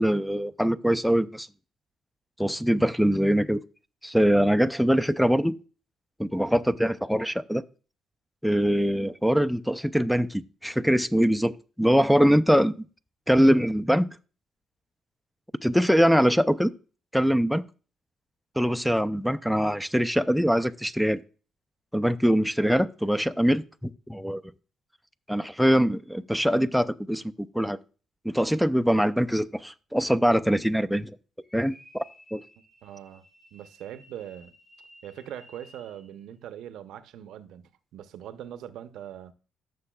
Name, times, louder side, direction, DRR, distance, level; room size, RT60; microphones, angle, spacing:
voice 1, 0.0-1.5 2.4-3.6 4.0-5.5 6.2-7.6 8.4-12.9 13.3-14.1 15.6-16.7 17.1-17.6 18.6-21.2 21.9-24.4 25.3-27.2 27.5-27.8 28.2-31.1 31.5-32.0 32.3-32.4, equal, ahead, 0.5 m, -23 dB
sound 1, 31.4-36.2, left 1 dB, 15° left, 3.2 m, -55 dB
voice 2, 32.8-33.2 33.5-34.5 35.0-39.3, right 10 dB, 80° right, 0.7 m, -41 dB
14.0 x 6.7 x 2.3 m
cardioid pair, 90°, 0 cm